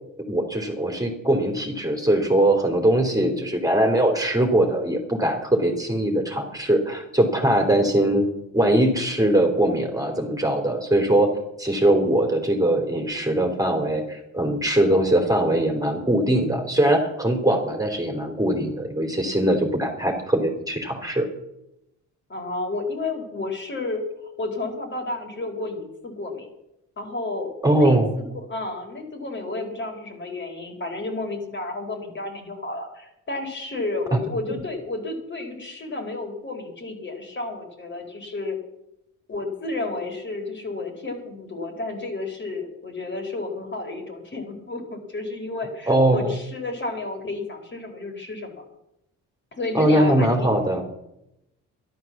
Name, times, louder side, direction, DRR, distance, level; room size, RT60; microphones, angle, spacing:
voice 1, 0.3-8.3 8.5-11.3 11.6-21.3 27.6-28.1 45.9-46.3 49.7-50.8, right 1 dB, 10° right, 2 dB, 3.3 m, -21 dB
voice 2, 22.3-26.5 27.0-38.6 39.3-48.6 49.5-50.5, left 2 dB, 40° left, 3 dB, 4.4 m, -31 dB
12.5 x 11.5 x 7.3 m, 0.86 s
cardioid pair, 90°, 30 cm